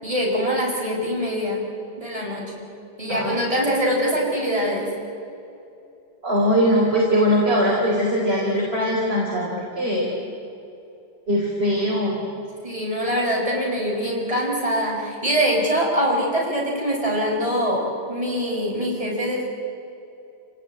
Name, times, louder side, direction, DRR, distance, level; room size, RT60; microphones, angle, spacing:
voice 1, 0.0-1.6 2.0-2.6 3.0-4.9 12.6-19.5, equal, 20° right, -3 dB, 6.4 m, -23 dB
voice 2, 6.2-9.5 9.8-10.1 11.3-12.2, equal, 35° right, -4 dB, 4.3 m, -21 dB
29.0 x 18.0 x 9.3 m, 2.8 s
omnidirectional pair, 1.8 m